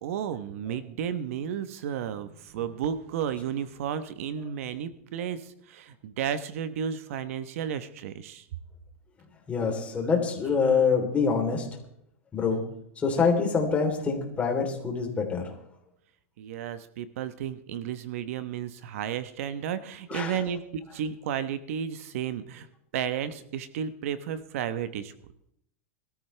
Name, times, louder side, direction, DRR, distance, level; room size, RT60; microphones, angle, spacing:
voice 1, 0.0-8.4 13.1-13.3 16.4-20.6 20.9-22.7 22.9-25.1, right 8 dB, 70° right, 13 dB, 1.1 m, -33 dB
voice 2, 9.5-11.7 12.3-12.6 13.0-15.5 20.1-20.4, left 5 dB, 15° left, 1 dB, 3.5 m, -25 dB
21.0 x 14.0 x 3.4 m, 0.72 s
supercardioid pair, 145°, 8 cm